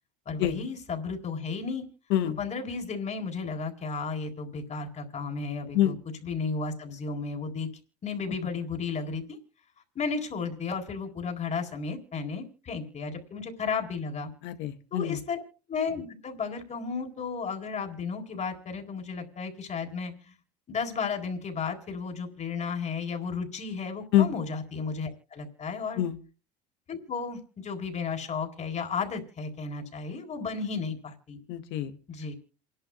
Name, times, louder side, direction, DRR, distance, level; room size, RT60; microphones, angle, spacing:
voice 1, 0.3-1.8 2.4-6.0 6.2-7.7 8.0-9.4 9.9-14.3 14.9-15.4 15.7-20.3 20.7-26.0 26.9-31.4 32.1-32.3, left 5 dB, 35° left, 5 dB, 4.2 m, -33 dB
voice 2, 14.4-15.2 24.1-24.3 26.0-26.2 31.5-31.9, left 12 dB, 65° left, 10 dB, 1.9 m, -25 dB
28.0 x 11.5 x 2.3 m, 0.35 s
hypercardioid pair, 85°, 20 cm